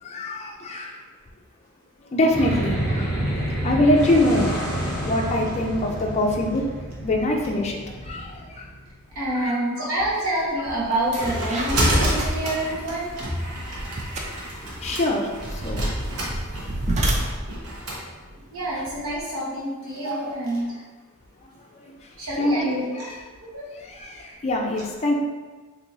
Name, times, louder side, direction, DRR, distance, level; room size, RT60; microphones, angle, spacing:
voice 1, 0.0-0.9 2.1-3.1 3.6-6.6 7.0-8.7 9.3-9.9 14.8-15.3 15.6-15.9 21.8-21.9 22.4-23.2 23.8-25.2, left 1 dB, 30° left, 0 dB, 0.4 m, -24 dB
sound 1, 2.3-8.9, right 1 dB, 5° right, 0.8 m, -29 dB
voice 2, 9.1-13.1 18.5-20.8 22.2-23.1 23.4-23.6, right 1 dB, 70° right, -6 dB, 1.1 m, -27 dB
sound 2, 10.4-10.5 10.9-19.2, right 1 dB, 30° right, 0.4 m, -31 dB
sound 3, 10.7-18.0, equal, 85° right, 0.9 m, -28 dB
2.9 x 2.7 x 3.8 m, 1.3 s
head